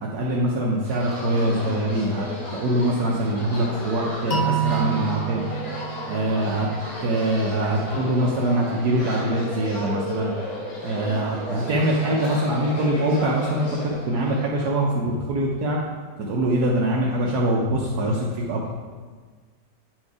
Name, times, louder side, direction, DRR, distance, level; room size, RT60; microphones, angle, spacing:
voice 1, 0.0-5.4 6.1-6.7 7.0-10.3 10.8-15.8 16.3-18.6, right 1 dB, 75° right, -3 dB, 1.3 m, -23 dB
sound 1, 0.8-14.5, left 1 dB, 70° left, 2.5 m, -34 dB
sound 2, 4.3-7.2, right 7 dB, 45° left, 0.8 m, -28 dB
8.6 x 4.6 x 4.7 m, 1.5 s
omnidirectional pair, 1.8 m